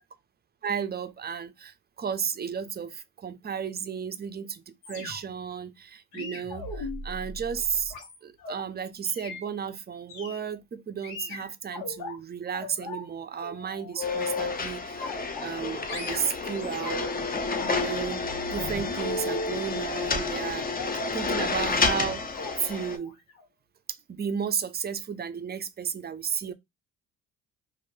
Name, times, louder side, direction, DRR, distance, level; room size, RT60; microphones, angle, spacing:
voice 1, 0.6-7.9 8.2-17.1 17.7-20.7 21.1-22.3 22.6-23.2 23.9-26.5, right 7 dB, 25° right, 0.4 m, -33 dB
sound 1, 4.8-5.5 6.1-8.6 9.1-9.4 10.1-10.4 11.0-12.2 12.5-13.1 13.4-14.6 15.0-15.6 15.9-17.2 17.5-19.6 20.8-21.2 21.9-22.1 22.3-22.6 22.9-23.1 23.4-23.5, left 3 dB, 90° left, 1.2 m, -37 dB
sound 2, 14.0-23.0, left 4 dB, 25° left, 0.5 m, -30 dB
3.0 x 2.6 x 2.5 m
cardioid pair, 80°, 38 cm